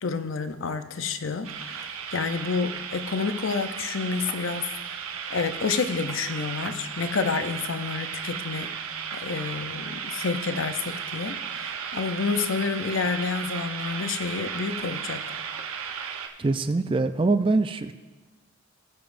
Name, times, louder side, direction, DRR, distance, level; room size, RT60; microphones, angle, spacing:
voice 1, 0.0-4.7 5.3-8.7 9.1-15.3, left 5 dB, 65° left, 10 dB, 0.6 m, -29 dB
sound 1, 1.4-16.3, right 7 dB, 85° right, 0.9 m, -35 dB
voice 2, 16.4-17.9, right 3 dB, 25° right, 10 dB, 0.3 m, -23 dB
18.5 x 7.2 x 2.6 m, 1.3 s
head